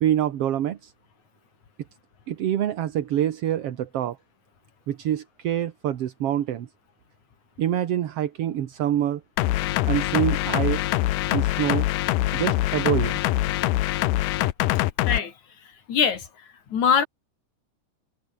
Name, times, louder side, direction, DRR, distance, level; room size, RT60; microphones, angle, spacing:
voice 1, 0.0-0.9 2.3-4.2 4.9-6.7 7.6-9.2 9.9-10.9 11.3-11.9 12.3-13.2, right 11 dB, 55° right, 1.9 m, -26 dB
sound 1, 9.4-15.2, left 17 dB, 90° left, 2.4 m, -24 dB
voice 2, 15.9-16.3 16.7-17.1, left 7 dB, 60° left, 4.1 m, -22 dB
omnidirectional pair, 3.7 m